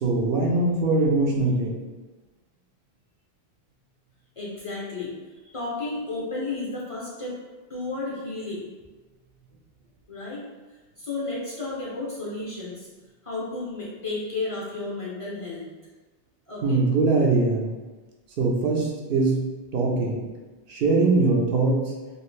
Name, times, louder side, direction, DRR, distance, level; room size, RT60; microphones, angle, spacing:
voice 1, 0.0-1.8 16.6-17.7 18.4-19.5 19.7-20.3 20.7-21.9, right 3 dB, 70° right, -1 dB, 0.8 m, -22 dB
voice 2, 4.4-5.1 5.5-7.3 7.7-8.7 10.1-10.5 11.0-12.9 13.2-15.6 16.5-16.8, left 3 dB, 40° left, -6 dB, 0.6 m, -32 dB
2.7 x 2.4 x 3.2 m, 1.2 s
omnidirectional pair, 1.0 m